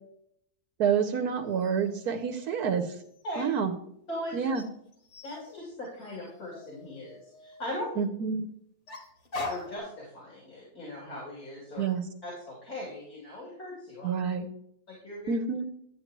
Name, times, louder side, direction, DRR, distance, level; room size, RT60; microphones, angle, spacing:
voice 1, 0.8-2.9 3.4-3.7 4.3-4.6 8.0-8.5 11.8-12.0 14.0-14.5 15.3-15.7, right 6 dB, 80° right, 4 dB, 1.2 m, -28 dB
sound 1, 1.5-3.6 4.5-7.8 8.9-9.8, left 2 dB, 50° left, 1.7 m, -43 dB
voice 2, 5.2-8.0 9.4-11.8 12.2-14.1 14.9-15.3, left 1 dB, 75° left, -4 dB, 3.2 m, -39 dB
11.0 x 8.0 x 3.0 m, 0.72 s
omnidirectional pair, 1.6 m